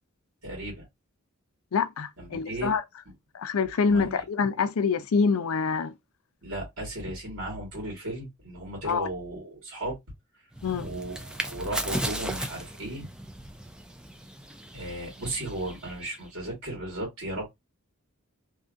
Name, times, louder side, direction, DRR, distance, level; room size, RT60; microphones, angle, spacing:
voice 1, 0.4-0.8 2.2-2.7 3.9-4.2 6.4-10.0 10.8-13.1 14.7-17.5, right 1 dB, 75° right, 1.5 m, -35 dB
voice 2, 1.7-2.8 3.3-5.9 8.8-9.1 10.6-10.9, left 5 dB, 75° left, 0.4 m, -26 dB
sound 1, 10.5-16.3, right 1 dB, 5° right, 0.3 m, -36 dB
2.7 x 2.5 x 2.5 m
head